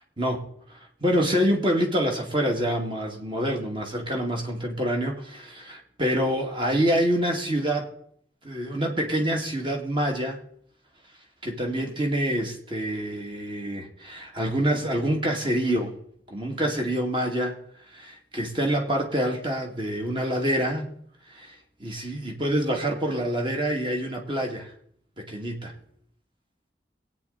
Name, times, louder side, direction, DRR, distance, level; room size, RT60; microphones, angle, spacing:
voice 1, 0.2-7.9 8.4-10.4 11.4-15.9 16.3-17.6 17.9-20.9 21.3-21.5 21.8-24.7 25.2-25.7, equal, 30° right, 2 dB, 2.2 m, -26 dB
22.0 x 9.2 x 4.1 m, 0.67 s
head